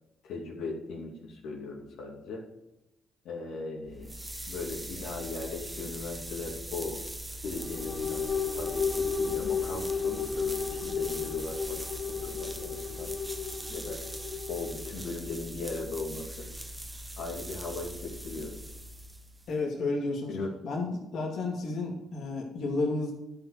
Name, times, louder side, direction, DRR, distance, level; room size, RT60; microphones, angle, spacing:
voice 1, 0.2-2.4 3.2-4.1 4.5-7.0 7.4-8.2 8.6-11.8 12.1-13.1 13.7-14.0 14.5-16.5 17.2-18.5 20.3-20.5, left 3 dB, 80° left, -2 dB, 2.6 m, -38 dB
sound 1, 3.8-19.6, right 1 dB, 10° right, 1.0 m, -41 dB
sound 2, 7.4-15.0, left 6 dB, 40° left, 1.1 m, -33 dB
voice 2, 19.5-20.4 20.6-23.1, left 3 dB, 65° left, -2 dB, 2.5 m, -31 dB
11.5 x 5.5 x 6.6 m, 0.92 s
cardioid pair, 90°, 0 cm